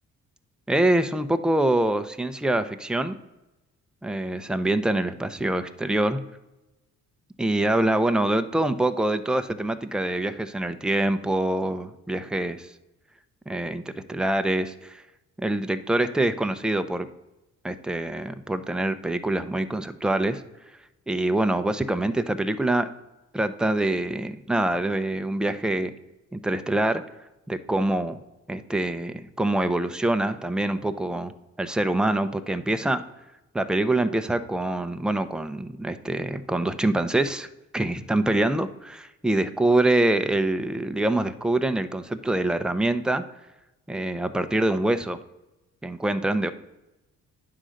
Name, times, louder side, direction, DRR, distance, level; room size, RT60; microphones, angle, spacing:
voice 1, 0.7-3.2 4.0-6.2 7.4-12.7 13.5-15.0 15.4-17.1 17.6-20.4 21.1-22.9 23.3-25.9 26.3-27.0 27.5-28.2 28.5-31.3 31.6-33.0 33.5-37.5 37.7-43.2 43.9-45.2 45.8-46.5, right 1 dB, 5° right, 9 dB, 0.5 m, -25 dB
9.8 x 3.8 x 6.4 m, 0.99 s
cardioid pair, 90°, 30 cm